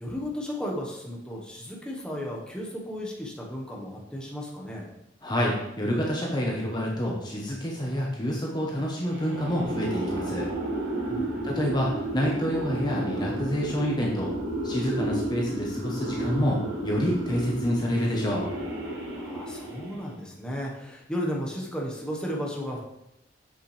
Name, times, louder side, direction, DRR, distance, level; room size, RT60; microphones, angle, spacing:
voice 1, 0.0-4.9 11.1-11.5 19.1-22.8, equal, 5° left, -3 dB, 1.3 m, -34 dB
voice 2, 5.2-10.5 11.4-14.3 14.6-18.5, equal, 25° left, -2 dB, 1.0 m, -28 dB
sound 1, 9.0-20.2, right 1 dB, 75° right, 2.0 m, -32 dB
7.8 x 6.1 x 3.3 m, 0.83 s
head